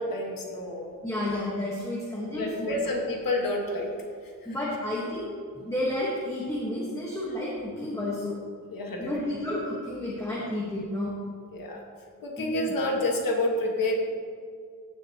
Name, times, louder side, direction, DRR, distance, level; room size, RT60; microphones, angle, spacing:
voice 1, 0.0-0.9 2.2-3.9 8.7-9.1 11.5-11.8 12.2-13.9, left 1 dB, 65° left, 0 dB, 1.6 m, -29 dB
voice 2, 1.0-2.8 4.4-8.4 9.0-11.1 12.4-12.5, left 1 dB, 10° left, -6 dB, 1.2 m, -31 dB
16.0 x 6.7 x 2.9 m, 2.2 s
wide cardioid pair, 175°, 36 cm